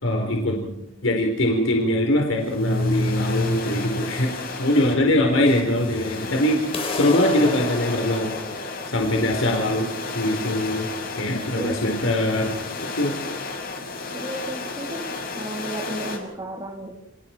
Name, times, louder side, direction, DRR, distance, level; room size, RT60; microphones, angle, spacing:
voice 1, 0.0-0.7 1.0-4.3 4.6-6.6 6.9-8.4 8.9-9.9 10.1-10.9 11.2-12.5 12.9-13.2, left 1 dB, 75° left, 1 dB, 4.4 m, -22 dB
sound 1, 2.4-16.2, left 3 dB, 45° left, 6.1 m, -33 dB
sound 2, 6.7-12.7, left 2 dB, 30° left, 4.3 m, -34 dB
voice 2, 11.5-11.9 14.1-16.9, right 1 dB, 20° right, -1 dB, 2.7 m, -33 dB
30.0 x 28.0 x 4.6 m, 0.80 s
head